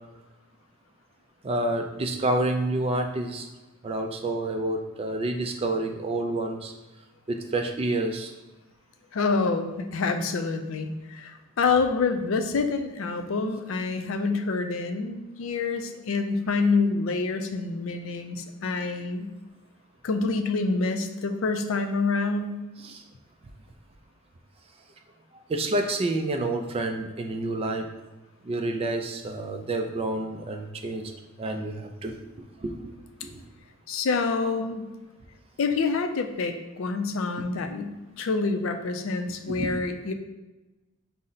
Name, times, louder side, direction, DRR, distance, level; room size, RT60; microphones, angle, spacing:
voice 1, 1.4-3.5 3.8-6.7 7.3-8.3 22.8-23.0 25.5-27.9 28.4-31.1 31.4-32.1 32.6-32.9 33.2-33.4 39.5-39.7, right 2 dB, 25° right, 5 dB, 0.3 m, -28 dB
voice 2, 9.1-19.3 20.0-22.6 33.9-34.9 35.6-40.1, left 4 dB, 65° left, 6 dB, 0.4 m, -27 dB
5.4 x 2.0 x 3.9 m, 1.1 s
head